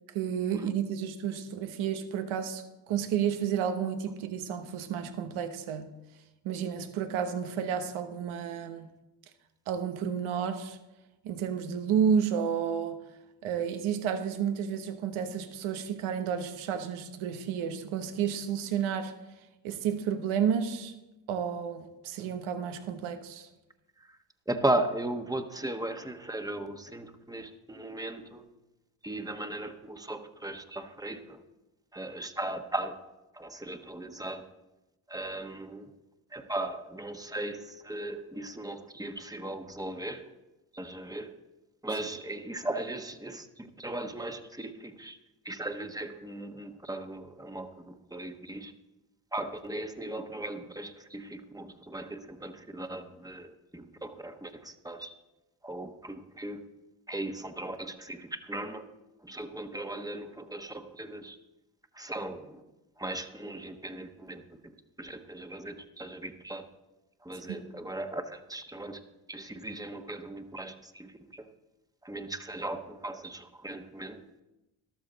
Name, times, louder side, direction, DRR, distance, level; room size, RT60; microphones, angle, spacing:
voice 1, 0.1-5.9 6.4-8.9 9.7-10.8 11.2-13.0 13.4-19.1 19.6-20.9 21.3-23.5 67.5-67.7, right 8 dB, 85° right, 1.2 m, -31 dB
voice 2, 24.5-28.5 29.0-31.4 31.9-33.0 33.3-34.5 35.1-35.9 36.3-40.3 40.7-41.4 41.8-45.2 45.4-48.7 49.3-55.1 55.6-56.7 57.1-58.9 59.2-61.4 61.9-62.6 63.0-64.7 65.0-66.7 67.2-69.0 69.3-71.5 72.0-74.3, right 1 dB, 10° right, 1.2 m, -37 dB
13.5 x 12.0 x 4.0 m
supercardioid pair, 60°, 47 cm